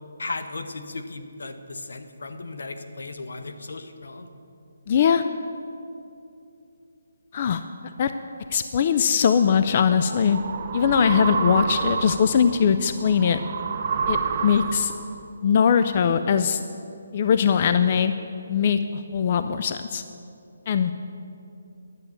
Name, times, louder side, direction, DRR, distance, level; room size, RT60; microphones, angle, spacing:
voice 1, 0.2-4.3, left 3 dB, 80° left, 8 dB, 1.0 m, -36 dB
voice 2, 4.9-5.2 7.3-7.6 8.0-8.1 8.5-10.4 10.7-13.4 14.1-14.9 15.4-16.7 17.1-18.1 18.5-20.0 20.7-20.9, left 7 dB, 35° left, 10 dB, 0.3 m, -21 dB
sound 1, 9.4-15.2, right 5 dB, 35° right, 0.6 m, -29 dB
11.0 x 8.0 x 7.1 m, 2.6 s
hypercardioid pair, 170°, 0 cm